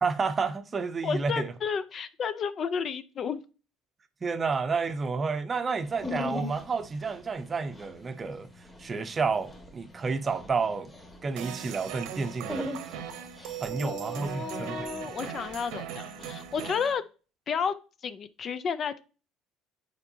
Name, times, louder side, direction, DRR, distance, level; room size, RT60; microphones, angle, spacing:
voice 1, 0.0-1.5 4.2-8.5 8.8-10.9 11.2-12.7 13.6-15.1, right 4 dB, 25° right, 0.6 m, -30 dB
voice 2, 1.0-3.4 13.7-17.0 17.5-17.7 18.0-19.0, left 6 dB, 35° left, 0.4 m, -32 dB
Dog, 5.9-16.7, left 2 dB, 15° left, 1.4 m, -42 dB
sound 1, 11.4-16.9, right 10 dB, 80° right, 0.9 m, -39 dB
9.7 x 4.4 x 2.7 m
cardioid pair, 140°, 0 cm